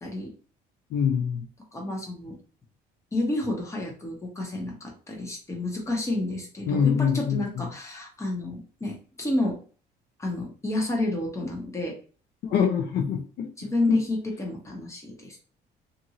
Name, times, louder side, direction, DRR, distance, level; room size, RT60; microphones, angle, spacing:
voice 1, 0.9-1.5 6.7-7.7 12.4-13.5 13.9-14.0, left 7 dB, 70° left, 3 dB, 0.6 m, -24 dB
voice 2, 1.7-2.3 3.1-9.6 10.2-11.9 13.6-15.4, left 2 dB, 15° left, 0 dB, 1.0 m, -30 dB
2.6 x 2.6 x 2.9 m, 0.40 s
cardioid pair, 110°, 17 cm